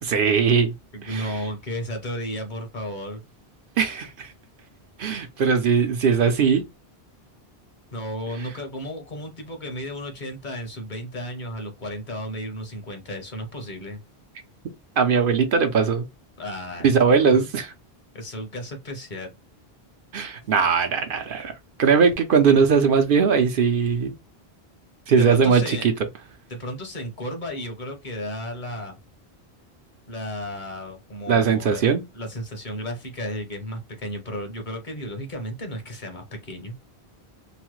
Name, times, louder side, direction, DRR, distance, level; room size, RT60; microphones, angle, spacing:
voice 1, 0.0-0.7 1.0-1.3 3.8-4.3 5.0-6.6 15.0-16.1 16.8-17.7 20.1-21.5 21.8-24.2 25.1-25.9 31.3-32.0, right 6 dB, 65° right, 0.7 m, -20 dB
voice 2, 0.9-3.2 5.1-5.2 7.9-14.0 16.4-17.4 18.1-19.3 20.4-20.5 25.2-25.9 26.5-29.0 30.1-31.8 32.1-36.7, equal, 50° left, 1.0 m, -33 dB
3.1 x 2.0 x 3.0 m
omnidirectional pair, 1.1 m